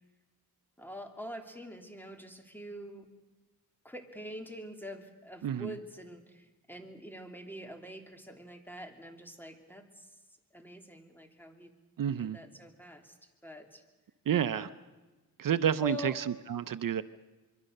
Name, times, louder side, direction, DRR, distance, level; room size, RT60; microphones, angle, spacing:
voice 1, 0.8-3.1 3.8-10.1 10.5-11.7 12.2-13.2 13.4-13.8 14.5-14.7 15.8-16.2, left 1 dB, 5° left, 5 dB, 3.0 m, -45 dB
voice 2, 5.4-5.7 12.0-12.4 14.3-14.7 15.4-17.0, right 9 dB, 65° right, 13 dB, 0.7 m, -30 dB
26.0 x 23.0 x 6.6 m, 1.2 s
cardioid pair, 85°, 36 cm